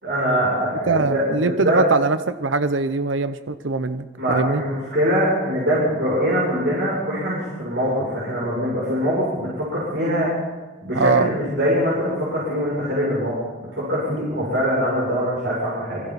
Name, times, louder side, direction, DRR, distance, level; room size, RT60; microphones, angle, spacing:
voice 1, 0.0-1.8 4.2-10.3 10.8-13.4 13.7-16.0, equal, 65° right, -7 dB, 7.4 m, -23 dB
voice 2, 0.9-4.6 10.9-11.3, right 3 dB, 90° right, 11 dB, 0.8 m, -22 dB
26.5 x 24.0 x 4.2 m, 1.3 s
head